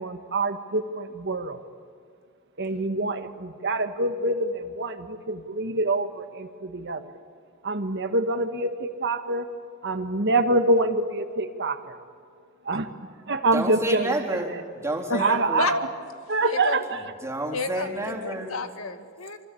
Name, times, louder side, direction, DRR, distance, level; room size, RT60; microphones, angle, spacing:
voice 1, 0.0-1.6 2.6-7.1 7.6-9.5 9.8-11.9 12.6-12.9 13.3-14.4 15.2-15.9 16.3-17.0, right 2 dB, 55° right, 7 dB, 1.6 m, -26 dB
voice 2, 13.5-15.6 16.9-18.6, right 1 dB, 15° right, 1 dB, 3.7 m, -30 dB
voice 3, 15.1-15.8 16.4-16.8 17.5-19.4, left 3 dB, 85° left, 8 dB, 2.1 m, -30 dB
27.5 x 25.0 x 8.6 m, 2.2 s
head